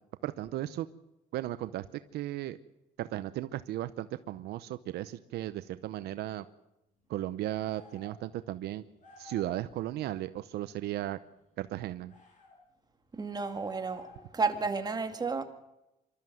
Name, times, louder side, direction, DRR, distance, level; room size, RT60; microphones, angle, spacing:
voice 1, 0.2-0.9 1.3-2.6 3.0-6.5 7.1-8.8 9.2-11.2 11.6-12.1, right 14 dB, 75° right, 0.8 m, -36 dB
sound 1, 7.7-8.2 9.0-9.6 12.1-12.6 13.6-14.3, left 2 dB, 45° left, 7.8 m, -52 dB
voice 2, 13.1-14.1 14.3-15.4, right 4 dB, 25° right, 2.0 m, -31 dB
26.0 x 13.0 x 7.8 m
cardioid pair, 110°, 17 cm